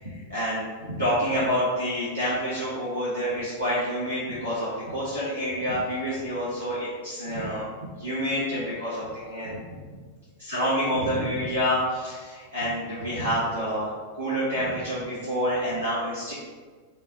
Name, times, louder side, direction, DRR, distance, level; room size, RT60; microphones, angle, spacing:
voice 1, 0.0-7.6 8.0-9.6 10.4-16.3, equal, 90° right, -11 dB, 1.2 m, -28 dB
5.1 x 2.2 x 3.8 m, 1.5 s
figure-of-eight pair, 90°, 0 cm